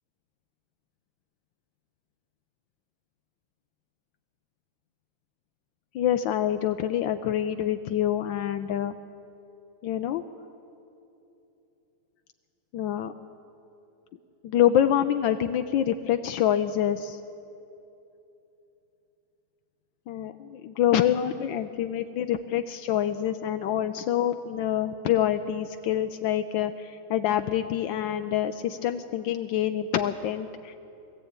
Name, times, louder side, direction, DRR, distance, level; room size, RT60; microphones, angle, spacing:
voice 1, 5.9-8.9 9.8-10.2 12.7-13.1 14.4-17.2 20.1-30.7, left 10 dB, 80° left, 8 dB, 1.4 m, -26 dB
22.0 x 15.0 x 8.8 m, 2.9 s
omnidirectional pair, 2.0 m